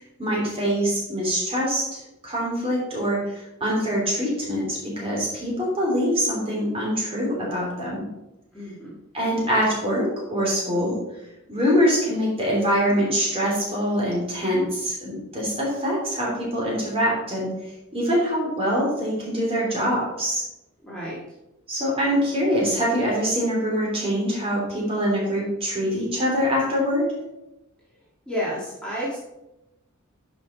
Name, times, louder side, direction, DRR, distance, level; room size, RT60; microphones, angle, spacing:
voice 1, 0.2-8.0 9.1-11.0 11.5-17.5 17.9-20.4 21.7-27.1, equal, 25° right, -4 dB, 3.3 m, -24 dB
voice 2, 8.5-9.0 20.8-21.2 28.3-29.2, equal, 5° left, -8 dB, 2.0 m, -30 dB
10.5 x 5.5 x 4.1 m, 0.91 s
head